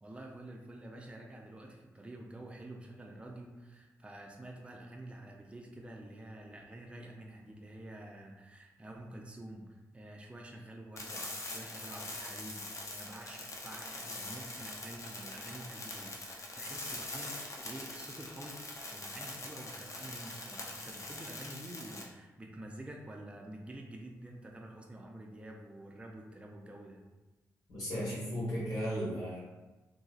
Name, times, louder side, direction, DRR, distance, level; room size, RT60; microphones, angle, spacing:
voice 1, 0.0-27.0, right 1 dB, 15° right, 1 dB, 0.5 m, -48 dB
sound 1, 11.0-22.0, left 2 dB, 45° left, 0.7 m, -43 dB
voice 2, 27.7-29.4, equal, 75° left, -7 dB, 1.4 m, -35 dB
3.0 x 2.6 x 2.4 m, 1.1 s
supercardioid pair, 45°, 7 cm